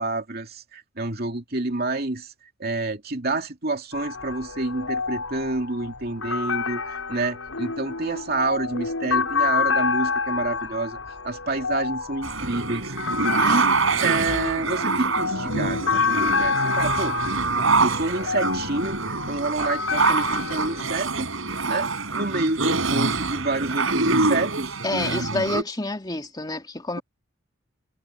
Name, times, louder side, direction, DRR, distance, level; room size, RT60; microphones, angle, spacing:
voice 1, 0.0-2.3 2.6-11.0 11.2-13.7 14.0-17.2 17.8-21.3 21.7-24.8, right 2 dB, 50° right, 2.6 m, -28 dB
sound 1, 3.9-20.8, left 5 dB, 90° left, 6.0 m, -28 dB
sound 2, 12.2-25.6, right 3 dB, 75° right, 5.2 m, -25 dB
voice 2, 24.8-27.0, left 2 dB, 20° left, 2.7 m, -28 dB
head